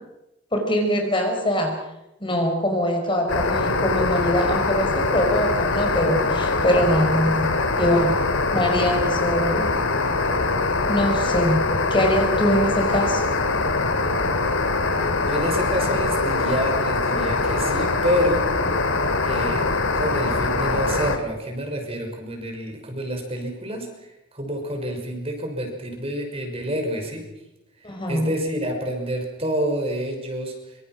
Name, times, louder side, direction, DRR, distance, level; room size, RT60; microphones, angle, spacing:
voice 1, 0.5-1.7 2.2-7.5 7.8-8.1 8.5-9.8 10.9-11.6 11.9-13.2 27.8-28.3, equal, 25° left, 3 dB, 4.7 m, -23 dB
sound 1, 3.3-21.2, left 3 dB, 85° left, 2.7 m, -23 dB
voice 2, 15.0-18.4 19.2-19.6 19.9-23.9 24.3-27.3 28.1-30.8, equal, 30° right, 3 dB, 5.8 m, -28 dB
26.0 x 25.5 x 6.2 m, 0.90 s
head